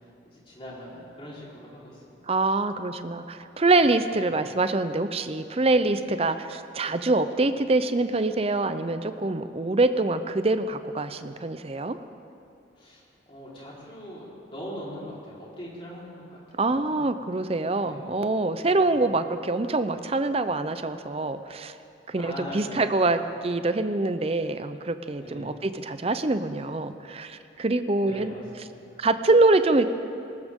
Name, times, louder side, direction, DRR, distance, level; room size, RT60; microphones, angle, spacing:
voice 1, 0.2-2.2 12.8-13.0 13.3-17.1 17.8-18.1 18.7-19.1 22.1-22.8 25.2-25.5 28.0-29.0, equal, 30° left, -6 dB, 4.1 m, -41 dB
voice 2, 2.3-12.0 16.6-21.7 22.1-28.3 29.0-29.9, right 2 dB, 30° right, 11 dB, 0.6 m, -25 dB
19.5 x 19.0 x 3.7 m, 2.5 s
head